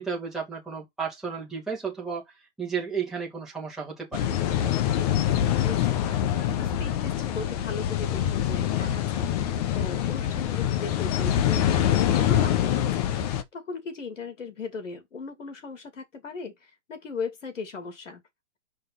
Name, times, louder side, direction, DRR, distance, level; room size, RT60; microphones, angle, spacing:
voice 1, 0.0-2.3 2.6-4.3, right 6 dB, ahead, 2.7 m, -33 dB
sound 1, 4.1-13.4, left 10 dB, 30° left, 1.0 m, -25 dB
voice 2, 5.6-18.2, left 4 dB, 80° left, 2.6 m, -38 dB
5.4 x 5.4 x 4.0 m
hypercardioid pair, 140°, 37 cm